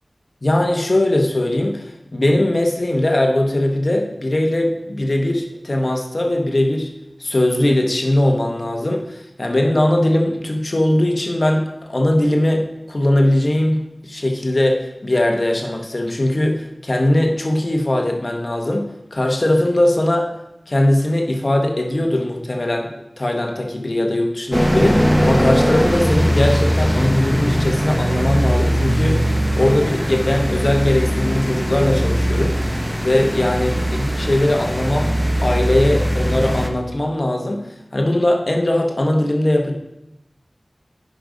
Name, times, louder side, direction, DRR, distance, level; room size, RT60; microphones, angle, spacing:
voice 1, 0.4-6.9 7.2-20.3 20.7-29.3 29.6-32.6 33.0-35.1 35.4-37.7 37.9-39.7, left 1 dB, 55° left, 2 dB, 1.1 m, -20 dB
sound 1, 24.5-36.7, equal, 5° right, 0.9 m, -20 dB
10.0 x 5.2 x 3.9 m, 0.88 s
wide cardioid pair, 45°, 0 cm